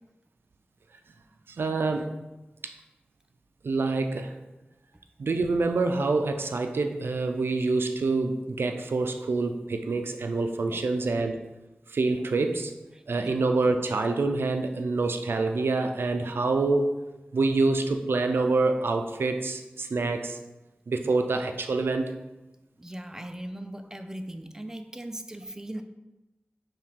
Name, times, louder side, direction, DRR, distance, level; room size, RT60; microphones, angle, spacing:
voice 1, 1.6-2.1 3.6-4.3 5.2-11.4 11.9-12.7 13.1-17.0 17.3-20.4 20.9-22.0, right 3 dB, 85° right, 6 dB, 0.4 m, -26 dB
voice 2, 12.9-13.4 22.8-25.8, right 1 dB, 15° right, 8 dB, 0.4 m, -39 dB
5.6 x 2.4 x 3.3 m, 1.0 s
wide cardioid pair, 55°, 4 cm